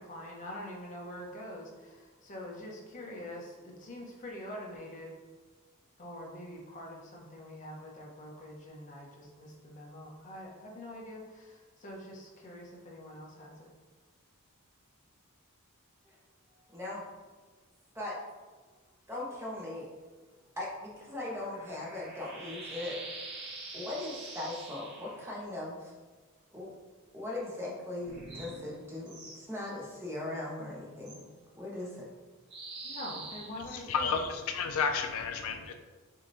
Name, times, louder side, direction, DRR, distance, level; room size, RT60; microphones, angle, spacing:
voice 1, 0.0-5.1 6.0-13.7 32.8-34.3, left 1 dB, 35° left, -2 dB, 0.8 m, -45 dB
voice 2, 16.7-17.0 17.9-18.2 19.1-19.9 20.6-23.0 23.7-25.9 26.5-26.7 27.1-31.2 31.5-32.1, left 2 dB, 10° right, -5 dB, 0.9 m, -39 dB
sound 1, 20.7-25.2 28.0-29.4 31.0-31.2 32.5-34.4, right 2 dB, 50° right, 1.4 m, -46 dB
voice 3, 33.9-35.7, left 5 dB, 65° left, 5 dB, 0.3 m, -31 dB
6.5 x 2.8 x 2.6 m, 1.3 s
head